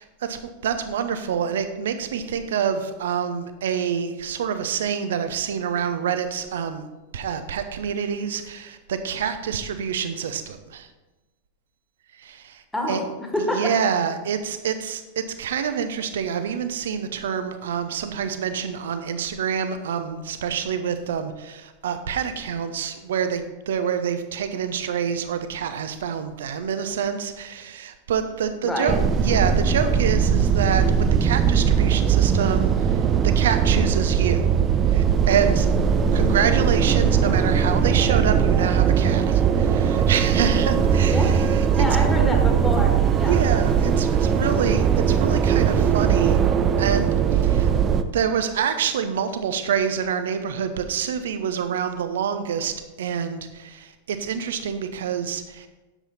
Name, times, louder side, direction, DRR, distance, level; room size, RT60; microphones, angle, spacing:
voice 1, 0.0-10.9 12.1-13.0 13.4-34.6 34.9-35.7 36.1-41.8 43.3-46.4 46.8-47.7 48.1-55.7, right 7 dB, 60° right, 9 dB, 0.9 m, -27 dB
voice 2, 12.7-13.0 13.3-13.6 28.6-29.0 36.0-36.3 41.1-41.3 41.8-43.4, left 1 dB, 10° left, 1 dB, 2.0 m, -27 dB
sound 1, 28.9-48.0, right 7 dB, 30° right, 0.6 m, -20 dB
9.9 x 7.4 x 4.2 m, 1.1 s
figure-of-eight pair, 90°, 0 cm